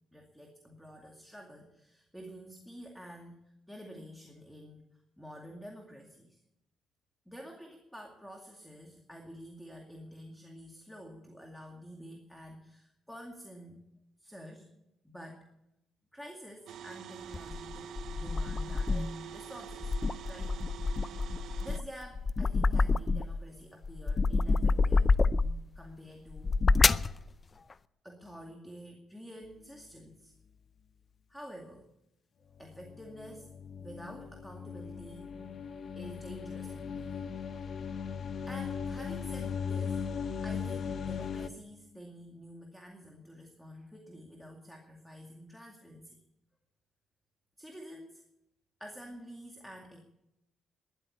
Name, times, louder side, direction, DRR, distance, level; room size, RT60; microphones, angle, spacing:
voice 1, 0.1-3.4 3.7-6.4 7.3-13.8 14.2-14.7 15.0-15.5 16.1-20.0 20.2-20.8 21.6-25.1 25.7-26.5 27.7-27.8 28.0-30.3 31.3-31.9 32.6-33.5 33.8-35.4 36.0-37.1 38.5-40.1 40.4-46.2 47.6-48.2 48.8-50.0, equal, ahead, 2 dB, 2.2 m, -49 dB
sound 1, 16.7-21.8, right 9 dB, 75° right, 0.7 m, -46 dB
sound 2, 17.3-19.2 19.7-23.4 23.8-25.7 26.3-27.1, left 3 dB, 30° left, 0.5 m, -27 dB
sound 3, 32.5-41.5, left 6 dB, 55° left, 0.8 m, -38 dB
13.0 x 10.5 x 9.6 m, 0.84 s
cardioid pair, 90°, 0 cm